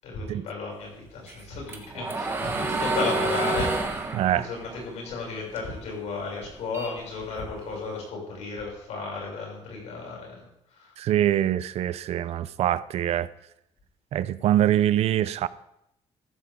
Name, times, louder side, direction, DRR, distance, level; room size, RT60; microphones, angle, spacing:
voice 1, 0.0-4.0 4.3-10.5 10.7-10.9, left 4 dB, 90° left, 6.9 m, -34 dB
sound 1, 1.3-5.8 6.2-7.7, right 3 dB, 20° right, 1.4 m, -29 dB
voice 2, 4.1-4.5 11.0-13.3 14.1-15.5, right 12 dB, 70° right, 0.6 m, -24 dB
14.5 x 14.0 x 3.7 m
cardioid pair, 170°, 11 cm